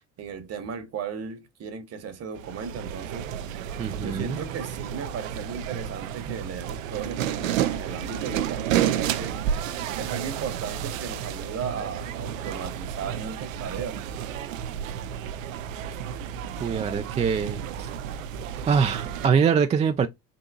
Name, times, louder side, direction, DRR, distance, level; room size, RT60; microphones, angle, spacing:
voice 1, 0.2-3.3 4.0-9.3 9.9-14.0, right 6 dB, 40° right, 1.1 m, -36 dB
sound 1, 2.4-19.3, right 9 dB, 90° right, 0.5 m, -31 dB
voice 2, 3.8-4.4 16.6-17.9 18.7-20.1, right 6 dB, 20° right, 0.3 m, -24 dB
3.9 x 2.7 x 2.3 m
hypercardioid pair, 75°, 38 cm